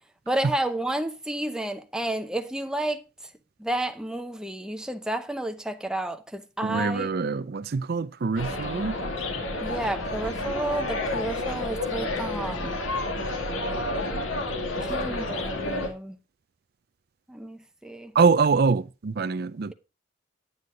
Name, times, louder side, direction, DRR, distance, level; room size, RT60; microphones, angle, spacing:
voice 1, 0.3-3.0 3.6-7.1 9.6-12.8 14.8-16.2 17.3-18.1, right 1 dB, 5° right, 0.7 m, -31 dB
voice 2, 6.6-8.9 18.2-19.7, right 5 dB, 50° right, 0.4 m, -24 dB
sound 1, 8.4-15.9, left 2 dB, 90° left, 2.4 m, -30 dB
9.5 x 9.3 x 3.8 m
head